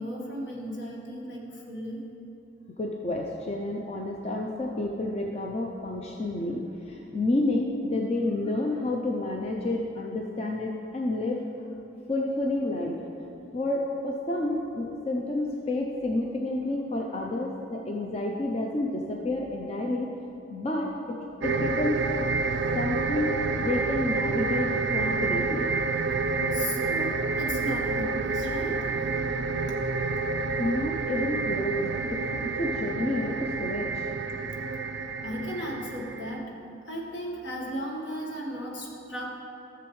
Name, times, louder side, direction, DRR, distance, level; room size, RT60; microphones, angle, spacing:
voice 1, 0.0-2.0 26.5-28.9 35.2-36.5 36.9-39.4, equal, 70° left, -2 dB, 1.5 m, -35 dB
voice 2, 2.8-11.4 12.1-13.0 13.5-20.1 20.5-20.9 21.4-22.0 22.7-25.8 30.6-31.9 32.6-34.1, left 2 dB, 35° left, 0 dB, 0.5 m, -30 dB
sound 1, 21.4-36.4, right 4 dB, 70° right, 0.4 m, -29 dB
14.0 x 6.9 x 3.2 m, 2.8 s
head